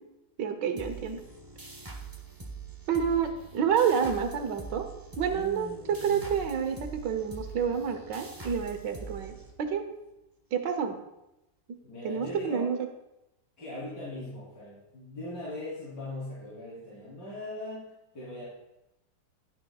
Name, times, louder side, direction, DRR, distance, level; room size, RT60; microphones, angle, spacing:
voice 1, 0.4-1.2 2.9-4.9 5.2-9.8 10.5-11.0 12.0-12.8, right 7 dB, 80° right, 7 dB, 1.5 m, -29 dB
sound 1, 0.8-10.0, right 4 dB, 20° right, 0.6 m, -44 dB
voice 2, 5.3-6.3 11.8-12.7 13.6-18.5, left 1 dB, 75° left, -11 dB, 4.0 m, -40 dB
11.5 x 9.4 x 2.4 m, 0.92 s
omnidirectional pair, 1.9 m